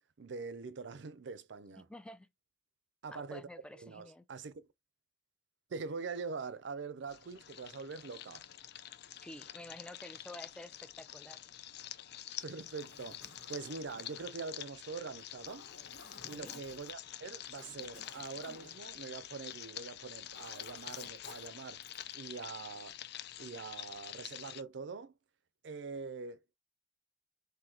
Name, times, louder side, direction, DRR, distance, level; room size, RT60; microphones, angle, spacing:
voice 1, 0.2-1.9 3.0-3.5 3.8-4.7 5.7-8.4 12.4-15.7 16.3-21.8 22.1-23.0 23.4-25.1 25.6-26.6, right 4 dB, 65° right, 0.5 m, -44 dB
voice 2, 1.7-2.3 3.1-4.2 9.2-11.4 16.2-16.5, left 1 dB, 5° left, 0.4 m, -50 dB
sound 1, 7.1-24.6, left 11 dB, 60° left, 0.5 m, -47 dB
Zipper (clothing), 12.6-19.8 20.0-22.2, left 4 dB, 85° left, 1.5 m, -55 dB
3.9 x 2.7 x 4.2 m
head